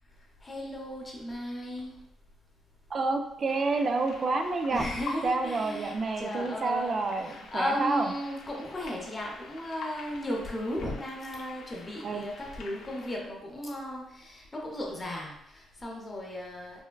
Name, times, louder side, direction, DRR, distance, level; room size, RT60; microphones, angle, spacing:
voice 1, 0.2-2.0 4.7-16.8, left 1 dB, 25° left, -2 dB, 0.7 m, -36 dB
voice 2, 2.9-4.8 5.2-8.1 12.0-12.2, right 3 dB, 45° right, 5 dB, 0.3 m, -29 dB
sound 1, 3.5-13.1, left 3 dB, 85° left, 0.4 m, -47 dB
3.3 x 2.1 x 2.2 m, 0.83 s
cardioid pair, 90°, 0 cm